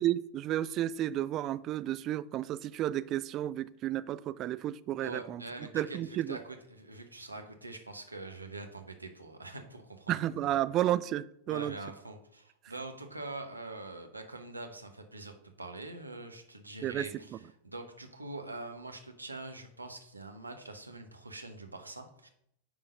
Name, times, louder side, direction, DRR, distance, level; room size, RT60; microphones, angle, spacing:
voice 1, 0.0-5.4 5.7-6.4 10.1-11.8 16.8-17.1, right 13 dB, 35° right, 0.3 m, -32 dB
voice 2, 5.0-10.6 11.5-17.4 17.6-22.3, right 2 dB, 85° right, 1.0 m, -44 dB
9.7 x 3.8 x 5.2 m
figure-of-eight pair, 90°, 0 cm